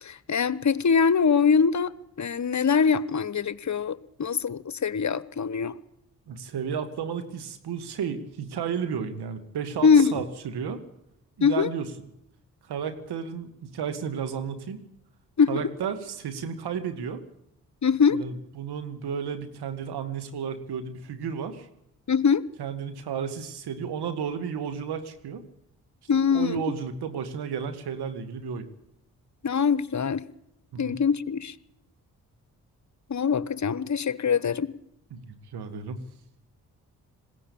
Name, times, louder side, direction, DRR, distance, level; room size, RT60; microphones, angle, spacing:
voice 1, 0.0-1.9 2.2-5.8 9.8-10.1 11.4-11.7 15.4-15.7 17.8-18.2 22.1-22.4 26.1-26.6 29.4-30.3 30.8-31.5 33.1-34.7, left 6 dB, 45° left, 1.1 m, -23 dB
voice 2, 6.3-10.8 11.4-11.9 12.7-14.8 15.5-17.2 18.1-21.7 22.6-25.4 26.3-28.7 30.7-31.0 35.1-36.0, right 7 dB, 75° right, 2.2 m, -33 dB
20.5 x 16.5 x 8.7 m
hypercardioid pair, 45°, 40 cm